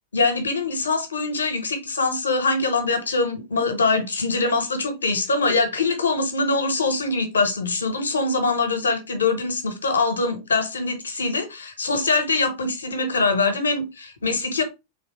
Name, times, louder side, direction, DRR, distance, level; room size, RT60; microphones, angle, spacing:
voice 1, 0.1-14.6, left 3 dB, 70° left, 1.0 m, -23 dB
3.7 x 2.9 x 3.0 m
figure-of-eight pair, 90°, 0 cm